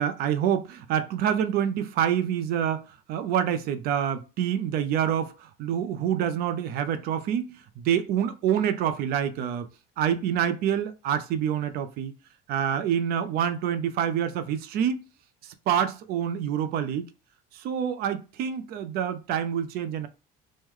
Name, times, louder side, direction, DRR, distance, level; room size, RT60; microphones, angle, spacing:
voice 1, 0.0-2.8 3.1-9.7 10.0-12.1 12.5-15.0 15.4-17.1 17.5-20.1, right 9 dB, 60° right, 0.4 m, -27 dB
3.0 x 2.1 x 3.5 m
cardioid pair, 145°, 18 cm